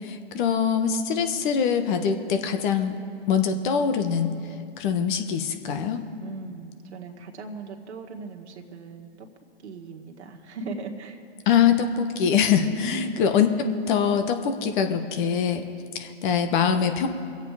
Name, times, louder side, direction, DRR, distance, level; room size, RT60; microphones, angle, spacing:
voice 1, 0.0-3.0 3.3-4.3 4.8-6.0 11.5-15.6 15.9-17.1, left 7 dB, 45° left, 7 dB, 1.3 m, -23 dB
voice 2, 6.2-9.3 9.6-11.2 12.7-13.2, right 2 dB, 80° right, 2 dB, 1.8 m, -38 dB
23.5 x 8.1 x 4.9 m, 2.4 s
hypercardioid pair, 135°, 33 cm